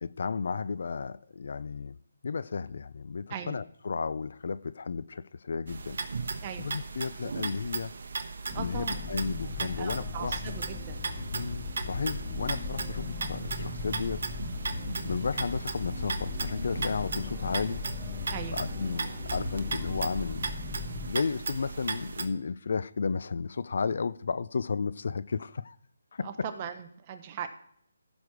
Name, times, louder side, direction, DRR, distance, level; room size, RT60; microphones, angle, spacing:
voice 1, 0.0-2.0 2.2-6.0 6.6-7.9 8.6-10.5 11.3-14.2 15.0-17.8 18.5-20.5 21.1-25.8 26.1-26.5, left 5 dB, 55° left, 0.4 m, -33 dB
sound 1, 5.7-22.3, right 4 dB, 60° right, 1.1 m, -37 dB
sound 2, 8.5-21.1, left 4 dB, 10° left, 1.3 m, -38 dB
voice 2, 8.5-9.0 9.6-11.0 18.3-18.6 26.2-27.5, right 8 dB, 25° right, 0.9 m, -39 dB
15.5 x 6.1 x 4.8 m
hypercardioid pair, 165°, 0 cm